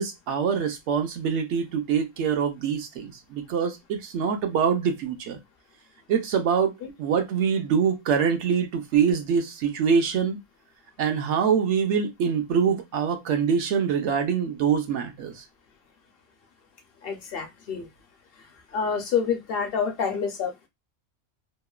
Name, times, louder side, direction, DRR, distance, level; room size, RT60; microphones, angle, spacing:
voice 1, 0.0-5.4 6.1-6.7 7.0-10.4 11.0-15.4, right 7 dB, 70° right, 0.9 m, -24 dB
voice 2, 17.0-17.9 18.7-20.7, left 6 dB, 60° left, 0.7 m, -28 dB
3.0 x 2.1 x 2.2 m
omnidirectional pair, 1.3 m